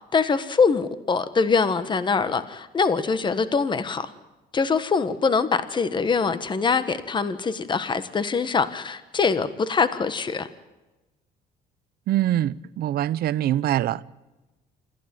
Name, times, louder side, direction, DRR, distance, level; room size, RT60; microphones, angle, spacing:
voice 1, 0.1-4.1 4.5-10.5, left 5 dB, 25° left, 1.4 m, -23 dB
voice 2, 12.1-14.0, right 12 dB, 65° right, 0.7 m, -24 dB
26.5 x 15.0 x 9.0 m
cardioid pair, 110°, 17 cm